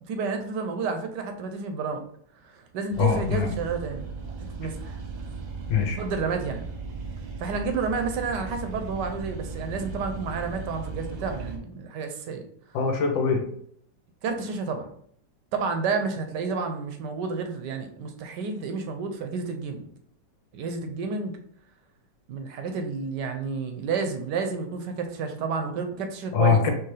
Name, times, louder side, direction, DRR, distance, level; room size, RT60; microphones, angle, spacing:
voice 1, 0.1-2.0 2.4-4.0 4.4-5.0 6.0-6.6 7.4-12.4 14.2-14.9 15.5-19.9 20.5-21.4 22.3-26.6, right 4 dB, 75° right, 6 dB, 1.2 m, -30 dB
sound 1, 2.9-11.6, right 4 dB, 55° right, 0.9 m, -37 dB
voice 2, 3.0-3.5 5.7-6.0 12.7-13.4 26.3-26.7, left 6 dB, 80° left, 4 dB, 1.6 m, -22 dB
4.6 x 3.3 x 3.2 m, 0.64 s
omnidirectional pair, 2.0 m